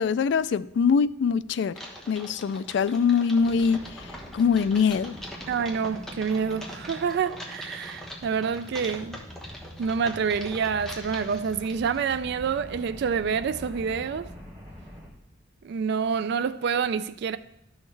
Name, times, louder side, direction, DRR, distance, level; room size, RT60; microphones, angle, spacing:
voice 1, 0.0-1.7 2.1-3.9 4.3-5.1, left 6 dB, 65° left, 0.3 m, -23 dB
Typing, 1.7-12.2, equal, 5° left, 1.1 m, -43 dB
sound 1, 3.4-15.1, equal, 20° right, 2.8 m, -44 dB
voice 2, 5.5-9.2 9.8-14.3 15.6-17.4, right 6 dB, 60° right, 0.3 m, -27 dB
11.0 x 6.4 x 3.3 m
head